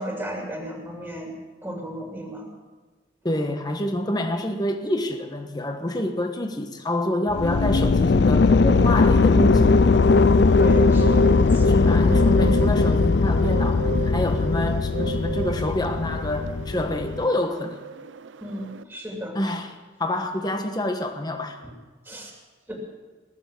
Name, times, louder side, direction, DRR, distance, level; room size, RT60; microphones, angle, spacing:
voice 1, 0.0-1.3 1.6-2.5 10.6-11.7 12.3-12.5 18.4-19.4 22.1-22.3 22.7-22.8, equal, 10° right, 2.6 m, -34 dB
voice 2, 3.2-9.9 11.7-17.8 19.3-21.6, left 1 dB, 20° left, 1.3 m, -27 dB
sound 1, 7.3-17.3, left 4 dB, 65° left, 0.5 m, -19 dB
Bird, 10.5-18.8, right 5 dB, 85° right, 0.5 m, -36 dB
20.5 x 7.1 x 8.5 m
head